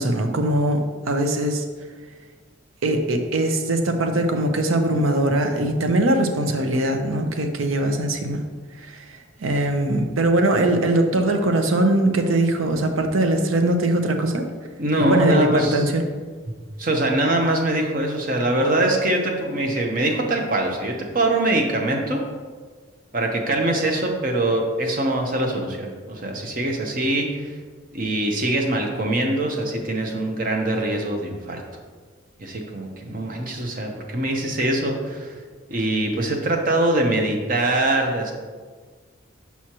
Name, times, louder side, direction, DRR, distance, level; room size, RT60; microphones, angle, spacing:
voice 1, 0.0-1.6 2.8-8.4 8.8-9.0 9.4-14.5 15.0-16.0, right 1 dB, 85° right, 6 dB, 0.6 m, -21 dB
voice 2, 14.8-15.9 16.8-22.2 23.1-27.5 27.9-31.6 32.4-35.4 35.7-38.3, right 1 dB, 45° right, 2 dB, 0.7 m, -23 dB
6.1 x 5.6 x 2.9 m, 1.5 s
head